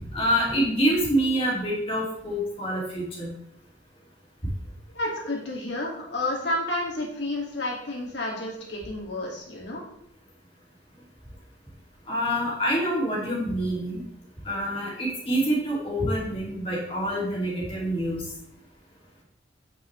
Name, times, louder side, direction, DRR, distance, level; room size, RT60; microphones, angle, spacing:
voice 1, 0.1-3.3 12.1-14.0 14.4-18.2, equal, 30° left, -4 dB, 2.6 m, -26 dB
voice 2, 4.9-9.8, left 1 dB, 65° left, -2 dB, 2.4 m, -30 dB
8.8 x 6.1 x 3.3 m, 0.76 s
head